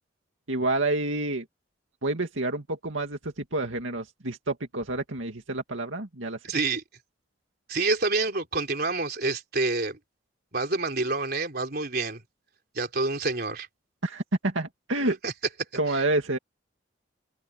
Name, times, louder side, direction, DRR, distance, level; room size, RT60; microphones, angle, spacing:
voice 1, 0.5-1.4 2.0-6.4 14.0-15.2 15.8-16.4, right 2 dB, 75° right, 2.3 m, -28 dB
voice 2, 6.4-6.8 7.7-10.0 10.5-12.2 12.7-13.7 15.0-15.3 15.9-16.0, right 3 dB, 50° right, 3.8 m, -28 dB
head